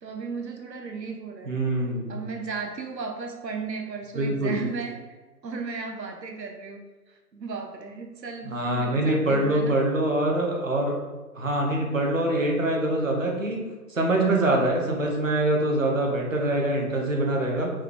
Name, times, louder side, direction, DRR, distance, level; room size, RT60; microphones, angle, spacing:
voice 1, 0.0-1.5 2.1-5.0 5.4-6.8 7.1-9.8, right 4 dB, 85° right, 3 dB, 0.7 m, -35 dB
voice 2, 1.5-2.2 4.1-4.6 8.4-11.0 11.3-17.7, right 1 dB, 50° right, 0 dB, 0.8 m, -24 dB
4.5 x 2.3 x 3.4 m, 1.2 s
figure-of-eight pair, 170°, 49 cm